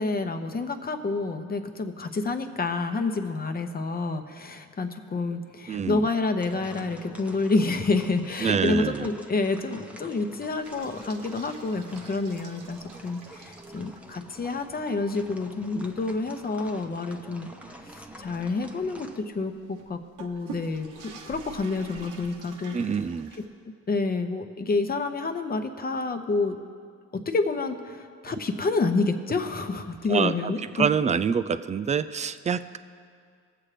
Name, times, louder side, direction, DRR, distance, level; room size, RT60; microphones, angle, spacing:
voice 1, 0.0-17.5 17.9-22.7 23.4-23.5 23.9-26.6 27.1-30.9, left 3 dB, 30° left, 7 dB, 0.9 m, -28 dB
voice 2, 5.7-6.1 8.4-9.1 22.7-23.3 30.1-32.8, right 6 dB, 25° right, 13 dB, 0.4 m, -26 dB
sound 1, 6.4-19.2, right 1 dB, 5° right, 0.8 m, -47 dB
sound 2, 10.6-14.2 14.6-14.7 15.2-15.3 15.8-23.5, right 5 dB, 85° right, 1.2 m, -47 dB
19.5 x 7.4 x 3.3 m, 2.2 s
cardioid pair, 90°, 30 cm